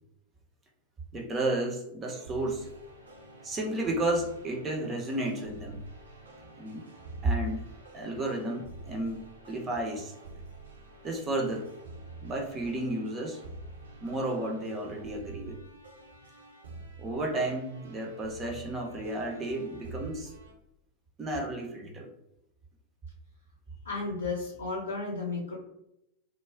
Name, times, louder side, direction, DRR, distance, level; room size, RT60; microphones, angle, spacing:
voice 1, 1.1-2.7 3.4-5.8 6.6-6.9 7.2-7.7 7.9-10.1 11.0-11.7 12.2-13.4 14.0-15.6 17.0-20.3 21.2-22.1, right 1 dB, 25° right, 2 dB, 0.5 m, -32 dB
sound 1, 2.0-20.5, right 2 dB, 70° right, 0.6 m, -48 dB
voice 2, 23.8-25.6, left 3 dB, 75° left, -3 dB, 0.6 m, -33 dB
2.3 x 2.0 x 3.3 m, 0.84 s
figure-of-eight pair, 90°, 0 cm